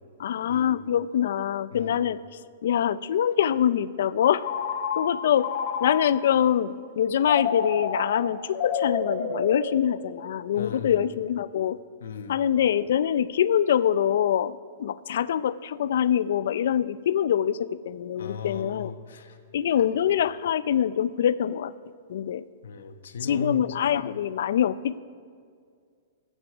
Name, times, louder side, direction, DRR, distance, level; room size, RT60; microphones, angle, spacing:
voice 1, 0.2-2.2 2.6-4.4 5.0-5.5 5.8-11.8 12.3-18.9 19.5-21.7 22.1-22.4 23.2-25.0, left 9 dB, 60° left, 16 dB, 0.4 m, -24 dB
Telephone, 4.4-6.4 7.2-10.3, left 6 dB, 35° left, 1.5 m, -30 dB
voice 2, 10.6-11.1 12.0-12.4 18.2-19.4 22.6-23.6, left 5 dB, 85° left, 7 dB, 1.1 m, -37 dB
19.5 x 8.1 x 4.9 m, 2.2 s
hypercardioid pair, 170°, 0 cm